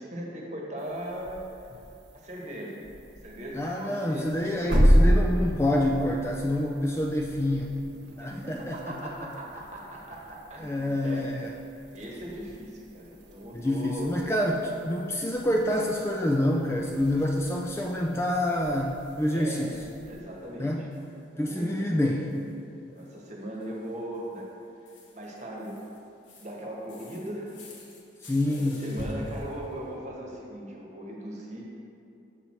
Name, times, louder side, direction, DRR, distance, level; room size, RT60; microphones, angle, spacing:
voice 1, 0.0-1.7 2.1-2.9 3.2-4.6 8.2-11.5 11.9-14.1 19.3-19.7 20.0-20.9 21.3-21.8 22.9-24.5 25.1-25.8 26.4-27.6 28.5-31.7, right 1 dB, 40° right, -2 dB, 1.2 m, -39 dB
sound 1, 0.8-20.2, equal, 65° right, 1.1 m, -31 dB
voice 2, 3.5-7.8 8.2-9.1 10.6-11.5 13.5-19.8 20.6-20.9 21.4-22.4 28.2-28.8, left 1 dB, 15° left, 0 dB, 0.3 m, -27 dB
sound 2, 16.8-22.0 22.3-30.0, left 1 dB, 80° left, 1.2 m, -47 dB
6.8 x 6.0 x 4.3 m, 2.7 s
head